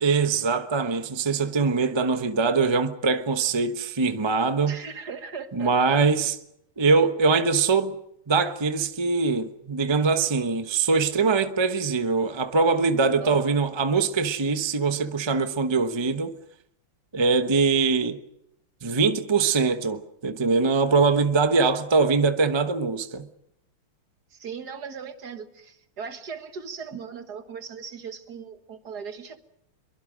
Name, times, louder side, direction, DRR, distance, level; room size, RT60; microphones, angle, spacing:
voice 1, 0.0-4.8 5.6-6.4 6.8-7.9 8.3-16.3 17.1-18.2 18.8-23.3, right 4 dB, 25° right, 0.6 m, -22 dB
voice 2, 4.7-6.0 13.2-13.5 24.3-29.4, right 6 dB, 55° right, 2.0 m, -38 dB
24.0 x 23.5 x 6.3 m
omnidirectional pair, 2.3 m